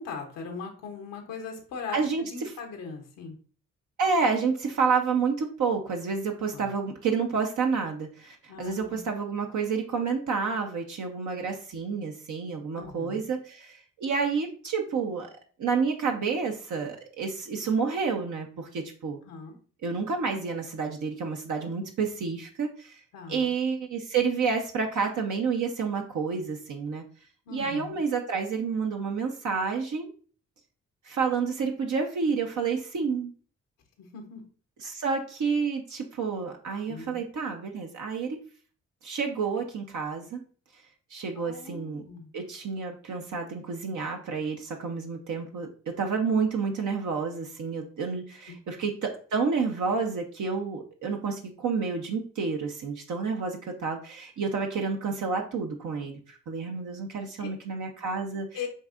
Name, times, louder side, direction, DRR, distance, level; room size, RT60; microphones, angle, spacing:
voice 1, 0.0-3.4 6.5-6.7 8.5-9.0 12.7-13.3 19.3-19.6 23.1-23.5 27.5-28.0 34.0-34.4 36.9-37.2 41.4-42.3 48.5-48.6 57.4-57.5 58.5-58.7, left 5 dB, 90° left, 4 dB, 0.9 m, -39 dB
voice 2, 1.9-2.2 4.0-15.3 15.6-19.2 19.8-23.0 23.3-27.0 27.5-30.1 31.1-33.3 34.8-38.4 39.0-40.4 41.1-42.0 42.3-58.5, right 5 dB, 65° right, 2 dB, 0.8 m, -29 dB
7.7 x 2.7 x 2.5 m, 0.42 s
supercardioid pair, 45°, 32 cm